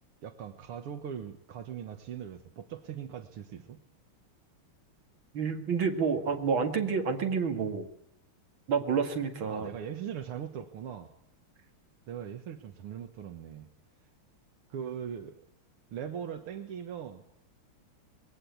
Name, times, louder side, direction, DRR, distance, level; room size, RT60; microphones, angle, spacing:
voice 1, 0.2-3.8 9.5-11.1 12.1-13.7 14.7-15.5 15.9-17.2, right 8 dB, 85° right, 7 dB, 2.3 m, -40 dB
voice 2, 5.3-7.9 8.7-9.7, right 5 dB, 65° right, 5 dB, 2.9 m, -29 dB
21.5 x 17.5 x 8.6 m, 0.78 s
omnidirectional pair, 2.4 m